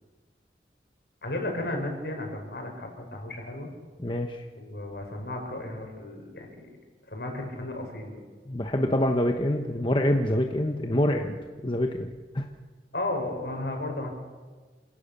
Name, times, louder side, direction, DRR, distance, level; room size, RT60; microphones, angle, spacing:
voice 1, 1.2-3.7 4.6-6.7 7.1-8.2 12.9-14.1, left 1 dB, 65° left, 3 dB, 5.4 m, -34 dB
voice 2, 4.0-4.4 8.5-11.3 11.6-12.5, left 1 dB, 30° left, 4 dB, 1.1 m, -26 dB
27.5 x 17.5 x 6.8 m, 1.4 s
head